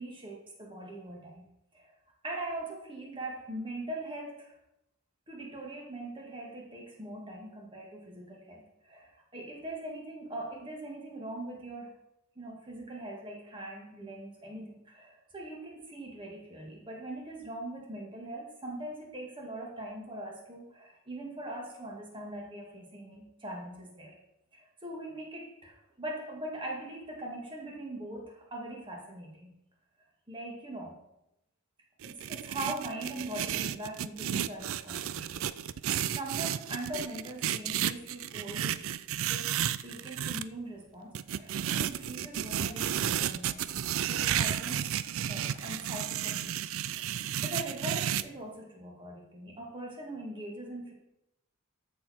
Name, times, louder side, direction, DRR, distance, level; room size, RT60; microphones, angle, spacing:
voice 1, 0.0-1.9 2.2-4.5 5.3-11.9 12.4-24.2 24.5-29.6 30.3-31.0 32.0-38.8 39.3-43.7 44.1-46.7 47.4-50.9, right 1 dB, 20° right, -1 dB, 2.0 m, -41 dB
sound 1, 32.0-40.4 41.1-48.2, right 10 dB, 60° right, 0.4 m, -32 dB
13.5 x 6.5 x 4.3 m, 0.87 s
head